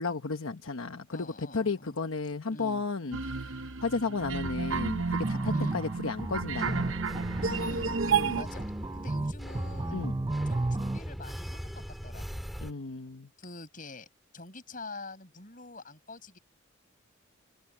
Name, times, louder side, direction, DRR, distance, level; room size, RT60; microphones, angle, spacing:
voice 1, 0.0-3.5 3.8-7.0 8.1-8.4 9.9-10.2 12.6-13.3, left 4 dB, 85° left, 1.1 m, -33 dB
voice 2, 1.1-2.0 2.5-2.8 5.5-5.8 7.4-8.0 8.3-10.0 10.4-12.5 13.4-14.1 14.3-16.4, left 2 dB, 40° left, 6.7 m, -45 dB
sound 1, 3.1-8.4, right 5 dB, 70° right, 0.9 m, -31 dB
sound 2, 5.2-11.0, right 2 dB, 20° right, 0.5 m, -33 dB
sound 3, 6.2-12.7, equal, ahead, 2.0 m, -39 dB
head